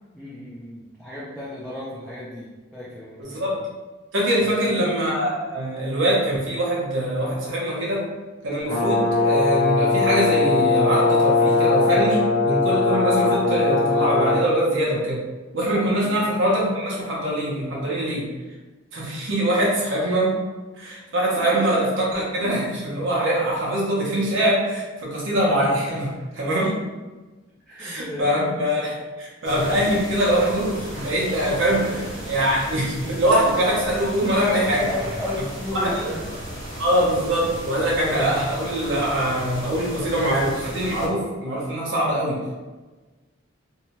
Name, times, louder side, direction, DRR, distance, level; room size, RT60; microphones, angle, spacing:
voice 1, 0.1-3.5 4.4-4.9 16.0-16.2 21.5-21.8 27.7-28.4 31.9-32.0 34.8-36.3, left 1 dB, ahead, -9 dB, 0.4 m, -34 dB
voice 2, 3.2-3.6 4.1-8.1 8.4-15.2 15.5-18.3 18.9-20.4 20.8-26.8 27.8-32.0 32.3-34.8 35.7-36.1 36.8-42.4, right 1 dB, 70° right, -5 dB, 0.7 m, -23 dB
Brass instrument, 8.7-14.5, left 3 dB, 35° left, 0.7 m, -20 dB
sound 1, 29.4-41.1, equal, 65° left, 0.9 m, -35 dB
2.7 x 2.2 x 2.9 m, 1.2 s
head